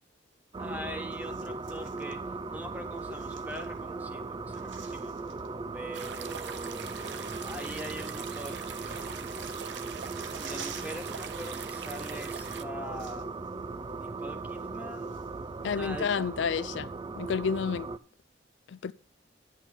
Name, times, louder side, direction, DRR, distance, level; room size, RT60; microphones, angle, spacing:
sound 1, 0.5-18.0, right 3 dB, 25° right, 0.4 m, -38 dB
voice 1, 0.6-2.2 2.5-5.1 5.7-9.8 10.4-13.3 14.0-15.1 15.6-16.3, equal, 10° right, 1.3 m, -43 dB
sound 2, 1.1-2.2 3.0-4.0 4.3-5.5 6.4-6.5 6.8-8.0 8.3-11.3 11.5-11.7 12.5-12.6 12.8-13.5 13.9-14.0 14.5-15.5 16.0-16.1, right 7 dB, 90° right, 1.1 m, -50 dB
sound 3, 5.9-12.6, right 7 dB, 65° right, 0.7 m, -42 dB
voice 2, 15.6-16.9 17.2-17.9 18.7-18.9, left 6 dB, 75° left, 0.4 m, -30 dB
9.9 x 8.3 x 4.4 m
head